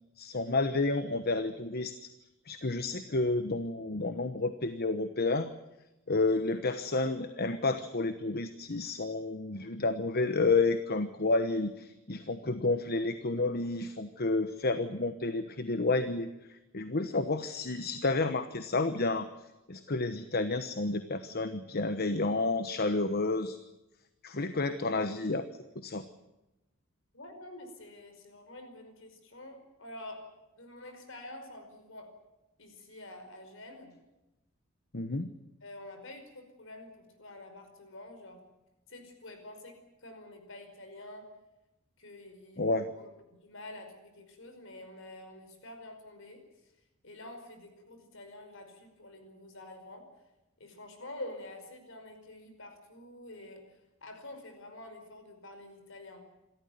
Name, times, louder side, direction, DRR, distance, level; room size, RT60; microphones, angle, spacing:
voice 1, 0.2-1.9 2.5-5.5 6.1-16.3 16.7-19.3 19.7-23.6 24.2-25.4 25.7-26.0 34.9-35.3 42.6-42.9, left 3 dB, 50° left, 10 dB, 1.1 m, -30 dB
voice 2, 27.1-30.2 30.5-32.1 32.6-33.9 35.6-38.4 38.9-41.3 42.0-43.1 43.4-46.4 47.0-50.1 50.6-56.3, left 1 dB, 65° left, 7 dB, 5.3 m, -48 dB
27.5 x 14.0 x 9.5 m, 0.98 s
head